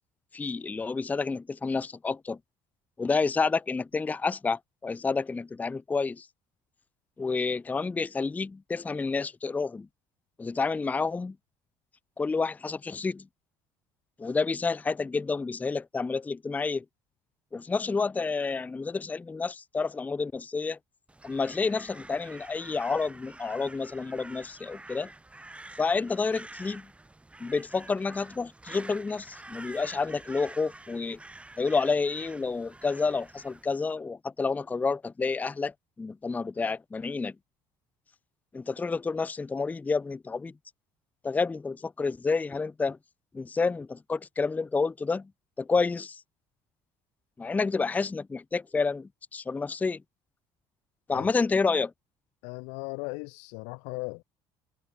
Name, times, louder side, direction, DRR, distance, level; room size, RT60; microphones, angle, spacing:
voice 1, 0.3-2.4 3.0-6.3 7.2-9.9 10.4-11.4 12.2-13.3 14.2-16.8 17.5-20.8 21.2-25.1 25.8-26.9 27.4-31.2 31.6-37.3 38.5-40.5 41.2-43.0 43.3-45.3 45.6-46.2 47.4-50.0 51.1-51.9, left 4 dB, 15° left, 0.4 m, -29 dB
Crow, 21.1-33.8, right 2 dB, 10° right, 1.9 m, -48 dB
voice 2, 52.4-54.2, left 36 dB, 90° left, 1.1 m, -37 dB
supercardioid pair, 95°, 11 cm